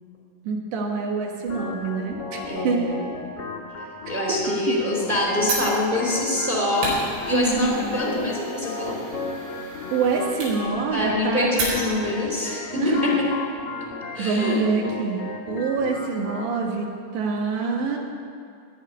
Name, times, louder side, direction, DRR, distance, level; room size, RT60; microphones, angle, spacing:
voice 1, 0.5-2.8 4.3-4.4 4.7-4.8 7.3-8.1 9.9-11.5 12.8-13.2 14.2-18.0, right 4 dB, 85° right, 0 dB, 3.8 m, -26 dB
Organ, 1.5-16.5, left 3 dB, 65° left, 1.5 m, -35 dB
voice 2, 2.4-2.9 4.1-7.0 7.2-9.0 10.9-13.2 14.1-14.7, left 1 dB, 10° right, -3 dB, 2.8 m, -25 dB
Fire, 5.4-12.2, right 2 dB, 70° right, 6.5 m, -34 dB
19.5 x 6.6 x 9.5 m, 2.3 s
omnidirectional pair, 4.9 m